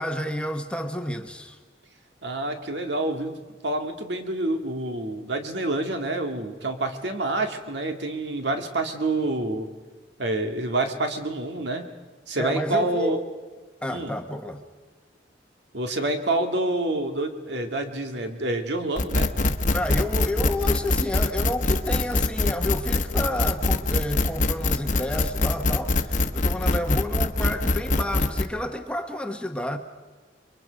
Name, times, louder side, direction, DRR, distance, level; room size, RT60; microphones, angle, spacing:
voice 1, 0.0-1.6 7.4-7.5 12.4-13.2 13.8-14.6 19.7-29.8, left 1 dB, 5° left, 1.1 m, -30 dB
voice 2, 2.2-3.4 3.6-9.7 10.2-11.9 12.3-13.2 13.9-14.2 15.7-19.3, right 2 dB, 65° right, 2.1 m, -27 dB
sound 1, 19.0-28.5, left 2 dB, 45° left, 1.1 m, -23 dB
30.0 x 23.0 x 5.2 m
head